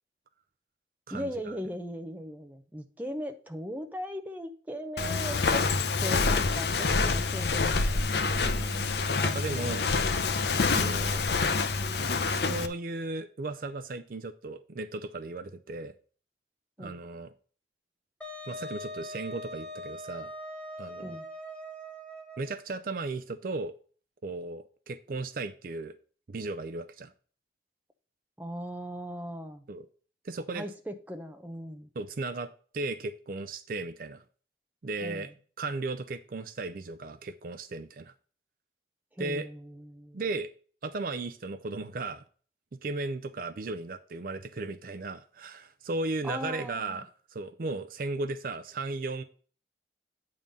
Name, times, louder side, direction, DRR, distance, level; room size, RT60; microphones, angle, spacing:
voice 1, 1.1-5.6 6.0-8.1 16.8-17.0 21.0-21.2 28.4-29.6 30.5-31.9 35.0-35.4 39.1-40.2 46.2-47.0, equal, 10° right, 0.7 m, -38 dB
Walk footsteps, 5.0-12.7, left 4 dB, 65° left, 0.6 m, -27 dB
voice 2, 8.4-9.9 10.7-11.2 12.3-15.9 16.8-17.3 18.5-20.3 20.8-21.2 22.4-23.7 24.2-25.9 26.3-27.1 29.7-29.9 30.2-30.6 32.0-34.2 34.8-35.3 35.6-38.1 39.2-39.5 40.1-40.5 40.8-42.2 42.8-49.2, right 3 dB, 50° right, 0.5 m, -36 dB
Wind instrument woodwind instrument, 18.2-22.6, equal, 5° left, 1.2 m, -42 dB
8.9 x 3.8 x 5.3 m
head